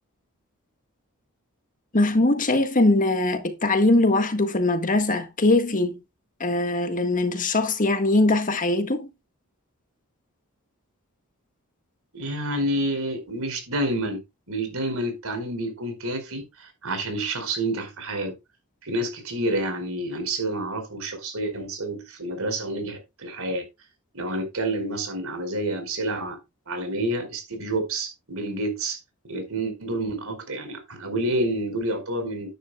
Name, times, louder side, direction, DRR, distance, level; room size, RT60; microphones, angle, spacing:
voice 1, 1.9-6.0 6.4-9.1, left 2 dB, 40° left, 1.6 m, -21 dB
voice 2, 12.1-14.2 14.5-18.3 18.8-23.6 24.1-26.4 26.7-29.0 29.2-32.6, right 1 dB, 70° right, 4.9 m, -29 dB
12.0 x 10.5 x 2.3 m
head